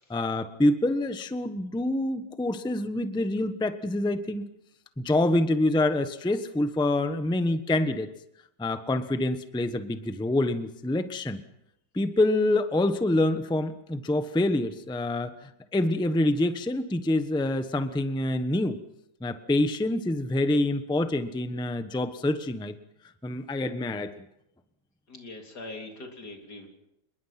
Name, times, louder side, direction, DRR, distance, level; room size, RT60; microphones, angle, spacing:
voice 1, 0.1-4.4 5.0-8.1 8.6-11.4 11.9-18.8 19.2-22.7 23.2-24.3, left 1 dB, 5° left, 9 dB, 0.7 m, -26 dB
voice 2, 25.1-26.7, left 2 dB, 50° left, 2 dB, 4.1 m, -42 dB
26.0 x 22.5 x 5.9 m, 0.83 s
omnidirectional pair, 2.2 m